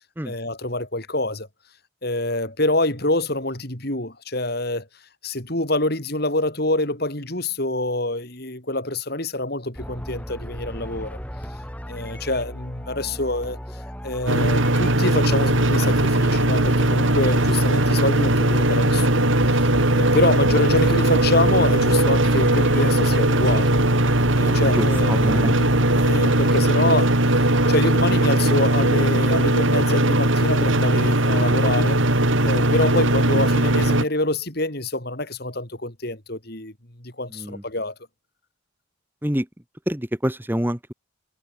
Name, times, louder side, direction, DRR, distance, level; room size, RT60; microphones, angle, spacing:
voice 1, 0.2-1.5 2.0-4.9 5.2-11.2 11.9-13.6 14.0-23.7 24.4-25.7 26.0-32.0 32.4-36.7 37.0-37.9, left 2 dB, 50° left, 4.4 m, -26 dB
sound 1, 9.8-26.4, equal, 5° left, 4.0 m, -35 dB
sound 2, 14.3-34.0, right 1 dB, 70° right, 4.1 m, -19 dB
voice 2, 24.5-25.6 37.3-37.6 39.2-39.5 39.9-40.9, equal, 10° right, 1.5 m, -26 dB
head